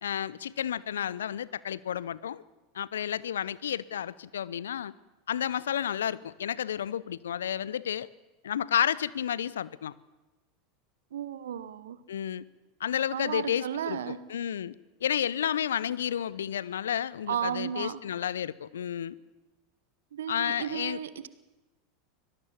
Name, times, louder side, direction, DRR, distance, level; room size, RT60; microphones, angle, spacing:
voice 1, 0.0-2.4 2.7-4.9 5.3-8.1 8.4-9.9 12.1-12.5 12.8-14.7 15.0-19.2 20.3-21.0, left 9 dB, 75° left, 21 dB, 0.6 m, -31 dB
voice 2, 11.1-12.0 13.1-14.3 17.3-18.0 20.1-21.3, right 9 dB, 70° right, 15 dB, 1.1 m, -34 dB
24.5 x 18.0 x 7.2 m, 1.1 s
figure-of-eight pair, 85°, 0 cm